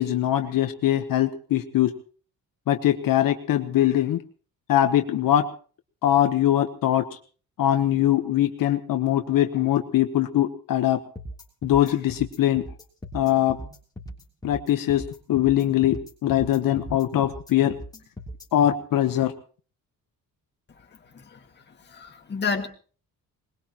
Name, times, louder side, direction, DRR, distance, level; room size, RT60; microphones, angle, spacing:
voice 1, 0.0-1.9 2.7-4.2 4.7-5.5 6.0-7.0 7.6-11.0 11.6-12.6 13.1-13.6 14.4-15.0 15.3-17.7 18.5-19.3, left 12 dB, 70° left, 7 dB, 1.1 m, -22 dB
sound 1, 11.2-18.5, equal, 10° left, 3.3 m, -39 dB
voice 2, 21.9-22.7, left 5 dB, 30° left, 3 dB, 2.0 m, -30 dB
21.0 x 21.0 x 3.0 m, 0.40 s
cardioid pair, 180°, 36 cm